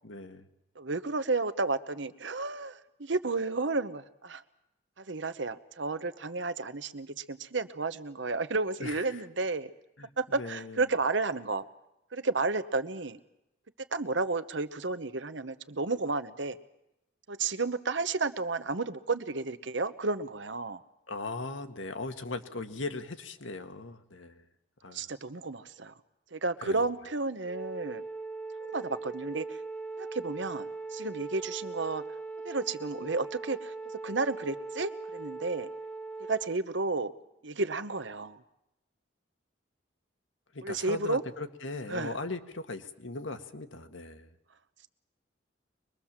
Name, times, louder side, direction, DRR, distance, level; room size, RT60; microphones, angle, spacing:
voice 1, 0.0-0.5 8.8-9.0 10.0-10.1 10.4-10.8 21.1-24.4 24.8-25.1 26.6-26.8 40.5-44.3, left 3 dB, 80° left, 8 dB, 1.6 m, -38 dB
voice 2, 0.7-4.4 5.0-9.7 10.2-11.6 12.1-13.2 13.9-16.6 17.3-20.8 24.9-25.9 26.3-28.0 28.6-29.6 30.0-32.0 32.4-35.7 36.3-37.1 37.4-38.4 40.6-41.2 41.9-42.2, right 3 dB, 70° right, 12 dB, 1.1 m, -32 dB
Wind instrument woodwind instrument, 27.4-36.6, right 3 dB, 5° left, 1.5 m, -40 dB
24.0 x 22.0 x 7.4 m, 0.86 s
head